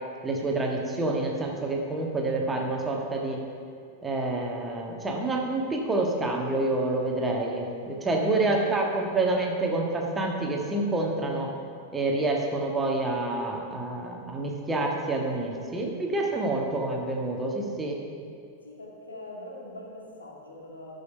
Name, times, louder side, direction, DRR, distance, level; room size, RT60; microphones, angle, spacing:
voice 1, 0.2-3.4 4.0-11.5 11.9-18.0, right 2 dB, 15° right, 0 dB, 1.6 m, -28 dB
voice 2, 8.1-9.3 18.6-21.0, left 1 dB, 75° left, -2 dB, 2.1 m, -42 dB
13.5 x 6.8 x 5.6 m, 2.5 s
figure-of-eight pair, 90°, 0 cm